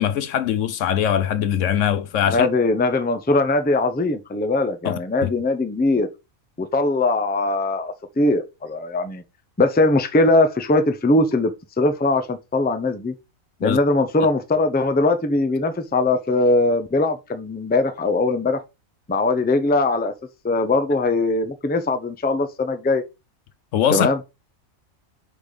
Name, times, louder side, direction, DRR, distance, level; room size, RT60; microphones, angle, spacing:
voice 1, 0.0-2.5 4.8-4.9 5.2-5.3 13.6-13.8 23.7-24.1, left 9 dB, 70° left, 0.9 m, -21 dB
voice 2, 2.3-6.1 6.6-9.2 9.6-11.5 11.8-13.1 13.6-18.6 19.1-20.1 20.4-23.0 23.9-24.2, left 2 dB, 10° left, 0.5 m, -20 dB
4.9 x 4.1 x 5.1 m
omnidirectional pair, 1.5 m